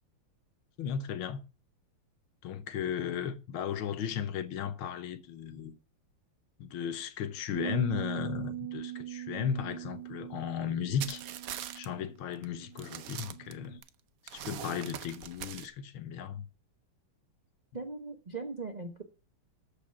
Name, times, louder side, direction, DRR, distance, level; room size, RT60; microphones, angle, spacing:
voice 1, 0.8-1.4 2.4-5.7 6.6-11.2 11.7-13.8 14.3-16.4, left 8 dB, 75° left, 1.6 m, -35 dB
sound 1, 7.5-13.8, right 14 dB, 30° right, 1.6 m, -41 dB
sound 2, 11.0-11.9 12.3-12.4 12.8-13.9 14.3-15.7, right 10 dB, 90° right, 0.7 m, -41 dB
voice 2, 17.7-19.0, right 3 dB, 45° right, 0.5 m, -39 dB
13.5 x 5.0 x 5.7 m
omnidirectional pair, 2.4 m